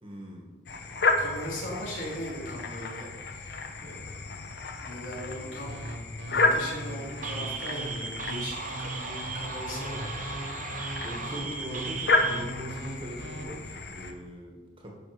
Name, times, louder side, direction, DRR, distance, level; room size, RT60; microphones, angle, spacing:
voice 1, 0.0-0.5 11.0-14.9, equal, 25° right, 0 dB, 1.3 m, -41 dB
sound 1, 0.7-14.1, left 3 dB, 55° left, 0.8 m, -32 dB
voice 2, 1.2-4.5 4.8-5.7 6.3-10.2, equal, 80° left, -5 dB, 3.2 m, -39 dB
sound 2, 5.7-13.4, right 2 dB, 65° right, 1.4 m, -40 dB
sound 3, 7.2-12.4, right 5 dB, 45° right, 0.9 m, -37 dB
11.0 x 5.2 x 4.8 m, 1.3 s
head